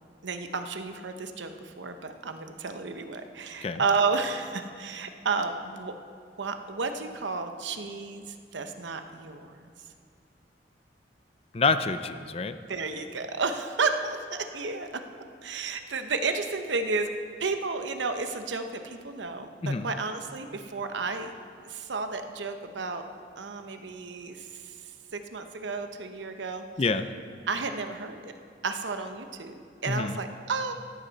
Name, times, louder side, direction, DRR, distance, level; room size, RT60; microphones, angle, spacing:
voice 1, 0.2-5.9 6.4-9.6 12.7-14.9 15.4-17.1 17.4-21.3 21.6-23.0 23.4-24.7 25.1-26.6 27.5-28.3 28.6-30.7, right 4 dB, 85° right, 7 dB, 0.9 m, -32 dB
voice 2, 11.5-12.6 19.6-19.9 26.8-27.1 29.9-30.2, left 4 dB, 35° left, 11 dB, 0.5 m, -27 dB
13.5 x 13.0 x 4.1 m, 2.3 s
head